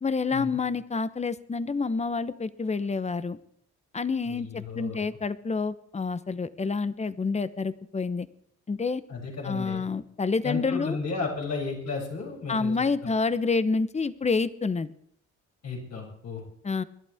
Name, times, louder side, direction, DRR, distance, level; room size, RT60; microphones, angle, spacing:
voice 1, 0.0-3.4 3.9-8.3 8.7-9.0 9.4-11.0 12.5-14.9 16.6-16.8, left 4 dB, 20° left, 14 dB, 0.9 m, -28 dB
voice 2, 4.3-5.0 9.1-9.8 10.4-12.7 13.0-13.1 15.6-16.4, left 4 dB, 60° left, -3 dB, 7.4 m, -33 dB
26.0 x 11.5 x 3.6 m, 0.67 s
cardioid pair, 90°, 30 cm